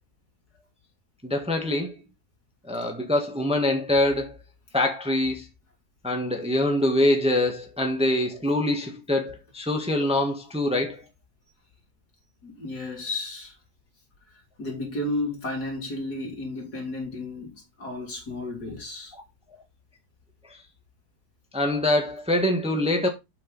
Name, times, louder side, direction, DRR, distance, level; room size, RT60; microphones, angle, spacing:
voice 1, 1.2-1.9 2.7-4.3 4.7-5.4 6.0-11.0 21.5-23.1, left 1 dB, 5° right, 1.3 m, -24 dB
voice 2, 12.4-13.5 14.6-19.1, left 2 dB, 70° left, 3.7 m, -33 dB
7.7 x 6.0 x 3.9 m
omnidirectional pair, 1.7 m